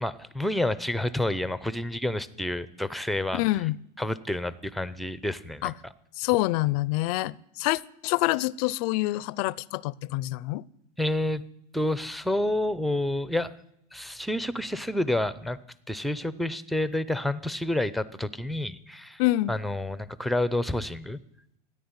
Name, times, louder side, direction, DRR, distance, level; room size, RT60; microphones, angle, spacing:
voice 1, 0.0-3.4 4.0-5.9 11.0-11.4 11.7-13.5 13.9-15.6 15.9-19.2 19.5-21.2, left 1 dB, ahead, 16 dB, 0.7 m, -29 dB
voice 2, 3.3-3.8 5.6-5.7 6.2-10.6 19.2-19.5, left 19 dB, 60° left, 23 dB, 0.6 m, -26 dB
14.0 x 9.8 x 9.7 m, 0.75 s
supercardioid pair, 125°, 21 cm